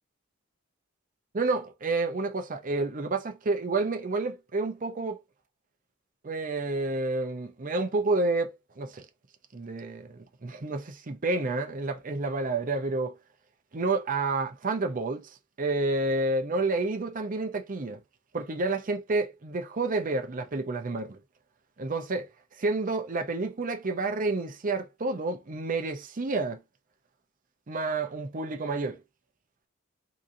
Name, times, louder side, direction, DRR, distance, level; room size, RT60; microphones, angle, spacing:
voice 1, 1.3-5.2 6.2-9.0 9.5-13.2 13.7-15.3 15.6-18.0 18.3-21.2 21.8-22.3 22.6-26.6 27.7-29.0, right 3 dB, 40° right, 0.7 m, -29 dB
3.7 x 3.0 x 2.6 m
head